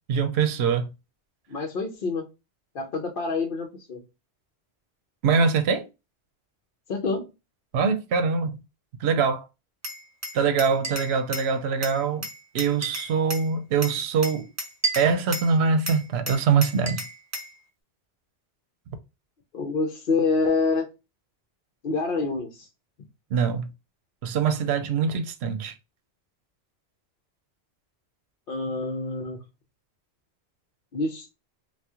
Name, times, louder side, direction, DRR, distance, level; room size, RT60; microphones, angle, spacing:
voice 1, 0.1-0.9 5.2-5.9 7.7-8.6 9.0-9.4 10.3-12.3 12.5-14.5 14.9-17.0 23.3-23.7 24.2-25.7, right 5 dB, 75° right, 0.8 m, -23 dB
voice 2, 1.5-2.2 2.7-4.0 6.9-7.3 19.5-20.9 21.8-22.7 28.5-29.4 30.9-31.3, left 4 dB, 60° left, 0.8 m, -27 dB
Glass, 9.8-11.5 11.8-13.5 13.8-15.5 15.9-17.5, right 1 dB, 20° right, 0.6 m, -33 dB
2.9 x 2.3 x 3.5 m
omnidirectional pair, 1.1 m